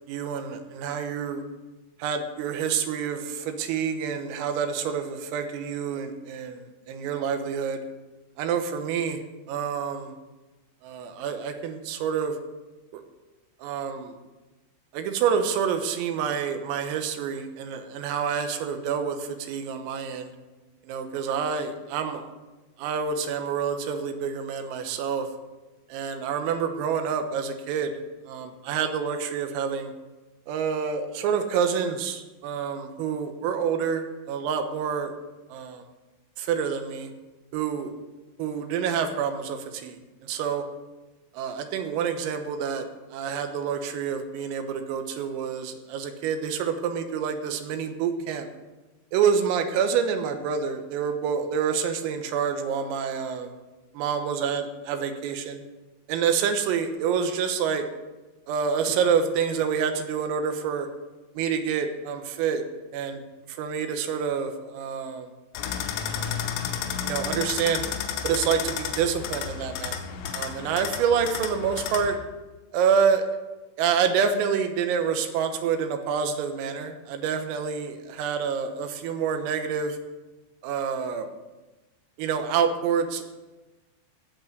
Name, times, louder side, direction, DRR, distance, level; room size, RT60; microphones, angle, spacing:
voice 1, 0.1-1.4 2.0-7.8 8.4-9.2 9.5-10.1 10.8-12.4 12.9-13.0 13.6-14.1 14.9-20.3 20.9-22.3 22.8-25.3 25.9-27.9 28.3-29.9 30.5-35.1 35.5-35.8 36.4-37.1 37.5-37.9 38.4-40.6 41.4-48.5 49.1-53.5 54.0-55.6 56.1-57.9 58.5-60.9 61.4-62.6 62.9-63.2 63.5-65.3 66.1-66.4 67.0-67.9 68.2-70.0 70.3-72.2 72.7-73.2 73.8-80.0 80.6-81.3 82.2-83.2, right 7 dB, 90° right, 6 dB, 3.8 m, -27 dB
sound 1, 65.6-72.2, left 8 dB, 90° left, 3.8 m, -32 dB
14.5 x 8.4 x 6.7 m, 1.1 s
omnidirectional pair, 6.0 m